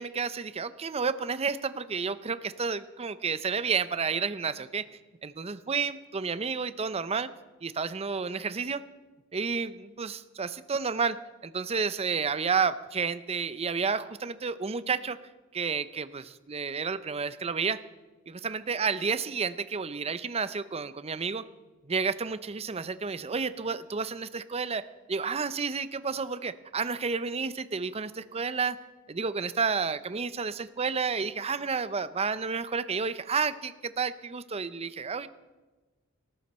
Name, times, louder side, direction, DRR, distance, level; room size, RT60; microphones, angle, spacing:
voice 1, 0.0-4.9 5.2-7.3 7.6-8.8 9.3-15.2 15.5-17.8 18.4-21.4 21.8-28.8 29.1-35.3, right 5 dB, 30° right, 14 dB, 0.6 m, -31 dB
18.5 x 14.0 x 4.3 m, 1.2 s
head